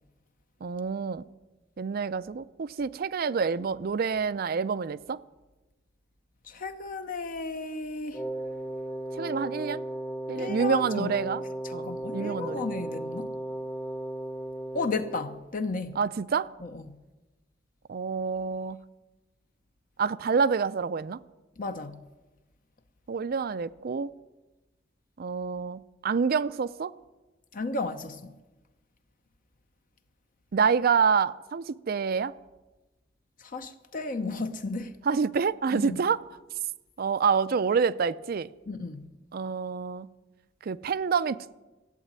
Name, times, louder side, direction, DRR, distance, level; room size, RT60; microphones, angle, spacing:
voice 1, 0.6-1.2 1.8-5.2 9.1-9.8 10.3-11.4 11.7-12.6 16.0-16.5 17.9-18.8 20.0-21.2 23.1-24.1 25.2-26.9 30.5-32.3 35.1-36.2 37.0-38.5 39.3-40.1 40.7-41.6, right 5 dB, 55° right, 0.4 m, -27 dB
voice 2, 6.4-8.2 10.3-11.1 11.6-13.3 14.7-16.0 16.6-17.0 21.6-22.0 27.5-28.3 33.4-34.9 35.7-36.0 38.7-39.1, left 3 dB, 45° left, 0.8 m, -34 dB
Wind instrument woodwind instrument, 8.1-15.4, right 1 dB, 10° left, 0.8 m, -36 dB
14.5 x 8.3 x 9.5 m
head